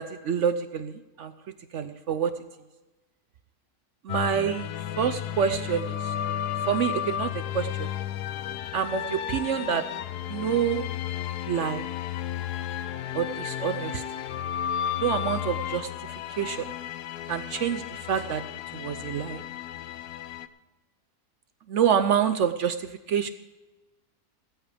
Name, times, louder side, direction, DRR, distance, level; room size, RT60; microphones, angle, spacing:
voice 1, 0.0-1.3 1.7-2.3 4.0-6.1 6.7-7.9 8.7-9.9 10.3-10.8 11.5-11.9 13.1-14.0 15.0-16.7 17.3-18.4 18.7-19.4 21.7-23.3, right 8 dB, 60° right, 9 dB, 0.8 m, -27 dB
sound 1, 4.1-20.5, left 10 dB, 85° left, 1.2 m, -33 dB
17.5 x 13.5 x 3.4 m, 1.1 s
omnidirectional pair, 1.7 m